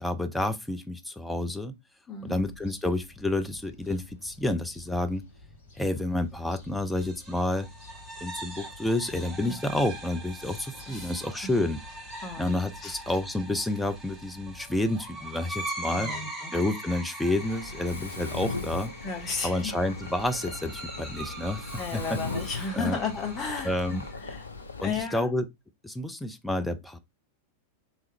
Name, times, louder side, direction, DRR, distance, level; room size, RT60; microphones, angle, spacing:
voice 1, 0.0-1.8 2.2-5.2 5.8-7.7 8.2-11.8 12.4-16.1 16.5-18.9 19.4-22.0 22.8-23.0 23.6-24.0 24.8-25.4 25.8-27.0, left 1 dB, 5° left, 0.5 m, -29 dB
voice 2, 2.1-2.4 9.4-9.6 10.9-11.1 11.4-11.5 12.2-13.0 15.9-16.5 19.0-19.7 21.7-24.5 24.8-25.3, left 4 dB, 25° left, 1.1 m, -34 dB
sound 1, 2.3-15.2, left 3 dB, 50° left, 1.6 m, -51 dB
sound 2, 6.8-24.1, right 1 dB, 15° right, 1.3 m, -42 dB
Mechanisms, 17.4-25.0, left 3 dB, 75° left, 0.5 m, -38 dB
3.6 x 2.9 x 3.1 m
figure-of-eight pair, 90°, 0 cm